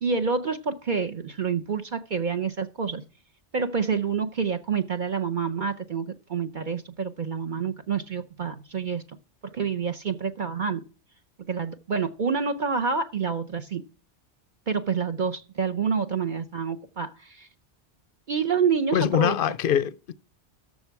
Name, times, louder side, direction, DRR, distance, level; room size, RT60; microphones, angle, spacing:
voice 1, 0.0-3.0 3.5-9.0 9.4-10.8 11.5-13.8 14.7-17.5 18.3-19.4, right 5 dB, 50° right, 0.8 m, -28 dB
voice 2, 18.9-20.1, left 9 dB, 60° left, 0.7 m, -23 dB
14.0 x 5.1 x 4.6 m
omnidirectional pair, 1.2 m